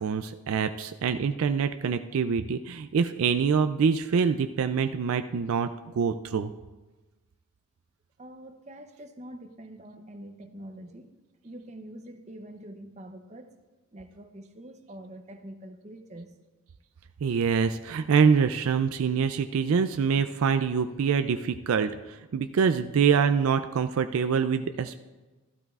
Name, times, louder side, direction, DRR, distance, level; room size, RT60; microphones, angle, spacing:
voice 1, 0.0-6.5 17.2-24.9, right 6 dB, 70° right, 9 dB, 0.4 m, -25 dB
voice 2, 8.2-11.1 11.4-13.5 13.9-16.3, right 1 dB, 30° right, 6 dB, 0.6 m, -45 dB
14.0 x 12.0 x 2.4 m, 1.2 s
head